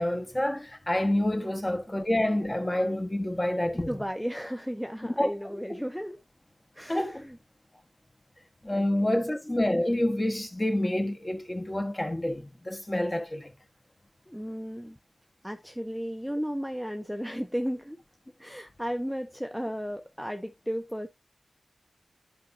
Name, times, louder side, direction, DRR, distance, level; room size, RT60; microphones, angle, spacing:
voice 1, 0.0-3.9 5.2-5.3 5.7-5.8 6.9-7.3 8.6-13.5, left 1 dB, 20° left, 1.3 m, -28 dB
voice 2, 3.9-6.2 6.7-7.4 8.7-9.3 14.3-15.0 15.4-18.0 18.4-21.1, equal, ahead, 0.7 m, -34 dB
10.5 x 5.2 x 2.7 m
wide cardioid pair, 95°, 0 cm